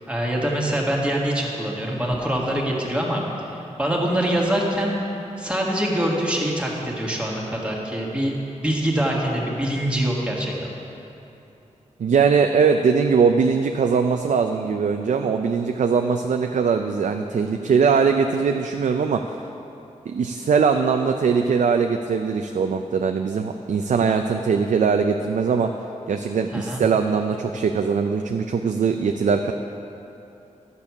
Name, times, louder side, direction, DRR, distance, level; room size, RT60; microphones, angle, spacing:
voice 1, 0.1-3.3 3.5-5.0 5.4-8.3 8.6-10.7 26.5-26.8, right 1 dB, 10° right, -3 dB, 1.8 m, -24 dB
voice 2, 12.0-19.2 20.1-25.7 26.1-29.5, right 5 dB, 75° right, 5 dB, 0.5 m, -21 dB
12.0 x 6.9 x 6.0 m, 2.9 s
wide cardioid pair, 105°, 13 cm